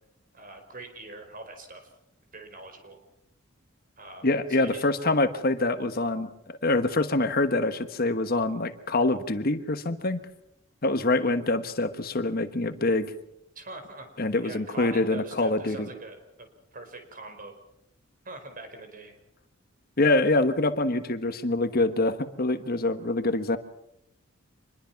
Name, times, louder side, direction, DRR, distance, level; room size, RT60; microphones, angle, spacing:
voice 1, 0.3-1.9 2.3-3.0 4.0-4.8 13.5-14.1 14.4-17.6 18.2-19.2, right 2 dB, 45° right, 7 dB, 4.9 m, -43 dB
voice 2, 4.2-6.3 6.6-10.2 10.8-13.1 14.2-15.9 20.0-23.6, left 2 dB, 50° left, 9 dB, 1.3 m, -25 dB
26.0 x 21.5 x 5.9 m, 0.79 s
head